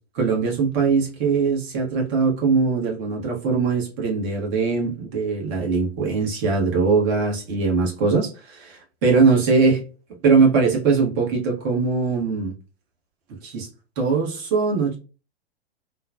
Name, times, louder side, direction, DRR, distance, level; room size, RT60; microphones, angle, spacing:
voice 1, 0.1-9.8 10.2-12.5 13.4-13.7 14.0-15.0, right 4 dB, 40° right, 1.2 m, -21 dB
3.0 x 2.3 x 2.2 m
figure-of-eight pair, 100°, 31 cm